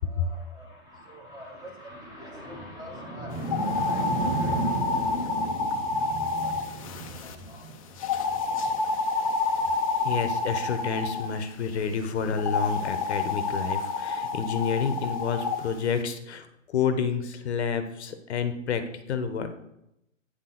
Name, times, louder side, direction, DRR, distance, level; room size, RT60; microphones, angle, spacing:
voice 1, 0.0-9.8, right 2 dB, 10° right, -1 dB, 1.3 m, -36 dB
sound 1, 3.4-7.3 8.0-11.3 12.4-15.6, left 3 dB, 25° left, 0.5 m, -28 dB
voice 2, 10.0-19.5, left 6 dB, 55° left, 9 dB, 0.9 m, -29 dB
8.4 x 3.9 x 5.8 m, 0.83 s
hypercardioid pair, 155°, 39 cm